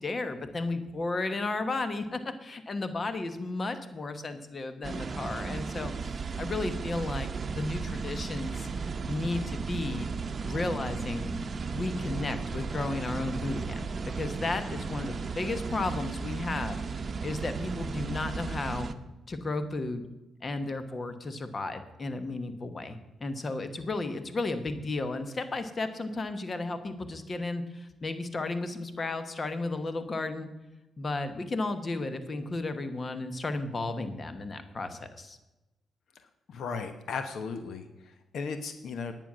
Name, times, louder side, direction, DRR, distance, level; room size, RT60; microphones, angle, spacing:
voice 1, 0.0-10.1 10.4-11.3 11.7-16.8 17.2-18.9 19.3-20.0 20.4-30.5 31.0-35.4, left 2 dB, 40° left, 10 dB, 1.2 m, -34 dB
sound 1, 4.8-18.9, right 5 dB, 45° right, 0.8 m, -35 dB
voice 2, 36.5-39.1, left 5 dB, 75° left, 9 dB, 0.9 m, -36 dB
10.0 x 9.1 x 6.2 m, 1.0 s
cardioid pair, 80°, 0 cm